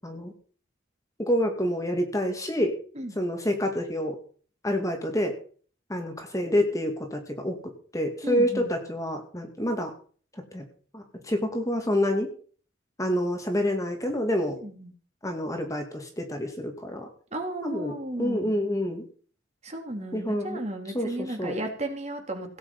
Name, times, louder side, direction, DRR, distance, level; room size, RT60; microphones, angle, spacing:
voice 1, 1.2-2.8 3.2-4.2 4.6-5.3 5.9-9.9 10.5-10.7 10.9-12.3 13.0-14.6 15.2-17.1 17.6-19.0 20.1-20.6 20.9-21.5, equal, 15° left, 4 dB, 2.3 m, -28 dB
voice 2, 8.2-8.7 14.6-14.9 17.3-18.5 19.6-22.6, right 1 dB, 35° right, 4 dB, 3.0 m, -34 dB
17.0 x 9.1 x 5.5 m, 0.43 s
head